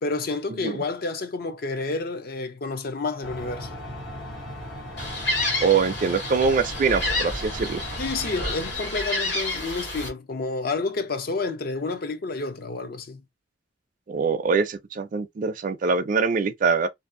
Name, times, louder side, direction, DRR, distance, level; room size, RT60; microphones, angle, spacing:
voice 1, 0.0-3.8 8.0-13.2, left 3 dB, 55° left, 0.5 m, -29 dB
sound 1, 3.2-8.7, equal, 90° left, 1.3 m, -38 dB
Gull seagull, 5.0-10.1, left 1 dB, 70° left, 1.5 m, -29 dB
voice 2, 5.6-7.8 14.1-16.9, right 5 dB, 45° right, 0.4 m, -23 dB
2.6 x 2.3 x 2.5 m
head